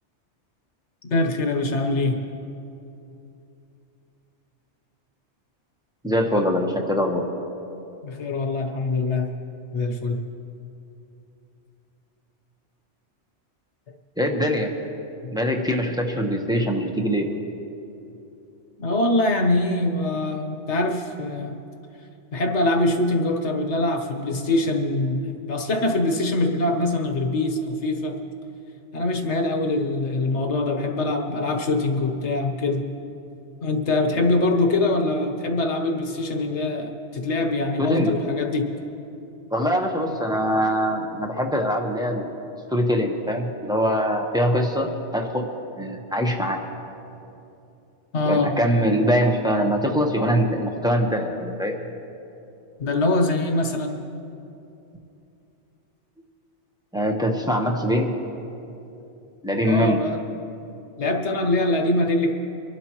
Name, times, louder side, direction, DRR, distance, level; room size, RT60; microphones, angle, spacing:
voice 1, 1.0-2.2 8.0-9.3 9.7-10.2 15.2-15.4 18.8-21.6 22.3-28.1 28.9-32.8 33.6-38.7 48.1-48.5 52.8-54.0 59.6-60.2 61.0-62.3, left 2 dB, 75° left, 4 dB, 1.5 m, -23 dB
voice 2, 6.0-7.3 14.2-14.8 15.3-17.3 37.8-38.2 39.5-42.3 42.7-45.5 45.8-46.6 48.2-51.8 56.9-58.1 59.4-60.0, equal, 5° right, 2 dB, 1.0 m, -23 dB
25.0 x 12.0 x 3.1 m, 2.8 s
omnidirectional pair, 1.2 m